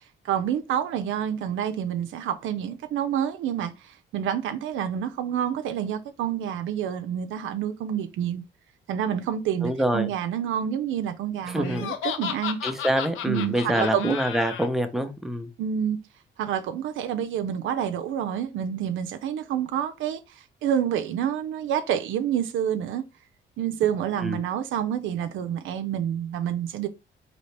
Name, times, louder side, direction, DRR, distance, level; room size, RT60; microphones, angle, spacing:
voice 1, 0.2-8.4 8.9-12.6 13.3-14.2 15.6-16.0 16.4-23.0 23.6-26.9, right 9 dB, 80° right, 0.5 m, -28 dB
voice 2, 9.6-10.1 11.5-11.9 12.6-15.5 24.2-24.4, equal, ahead, 0.7 m, -26 dB
Laughter, 11.6-14.7, left 8 dB, 85° left, 0.6 m, -33 dB
4.1 x 2.9 x 3.2 m
cardioid pair, 90°, 20 cm